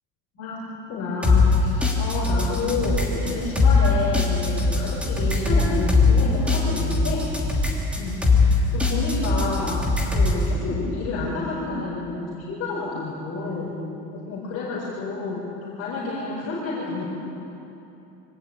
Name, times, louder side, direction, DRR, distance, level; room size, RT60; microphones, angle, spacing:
voice 1, 0.3-1.7 2.0-7.4 7.9-13.7 14.1-17.1, left 3 dB, 35° left, -5 dB, 4.4 m, -29 dB
sound 1, 1.2-10.4, left 3 dB, 5° right, 2.8 m, -21 dB
24.5 x 18.0 x 8.7 m, 2.9 s
cardioid pair, 170°, 43 cm